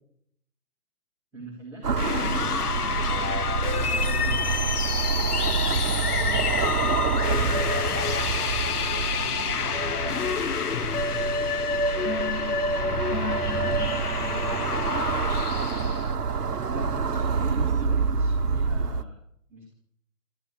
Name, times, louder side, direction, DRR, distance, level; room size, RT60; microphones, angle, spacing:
voice 1, 1.3-1.9 7.3-8.1 14.1-15.1 16.6-19.2 19.5-19.7, equal, 5° right, -8 dB, 1.6 m, -43 dB
sound 1, 1.8-19.0, right 5 dB, 75° right, 1.1 m, -27 dB
sound 2, 1.9-16.1, left 5 dB, 65° left, 1.0 m, -28 dB
voice 2, 3.6-4.5 7.5-7.8 8.7-10.3, left 4 dB, 35° left, 2 dB, 3.2 m, -41 dB
11.5 x 10.5 x 7.0 m, 0.71 s
hypercardioid pair, 160°, 48 cm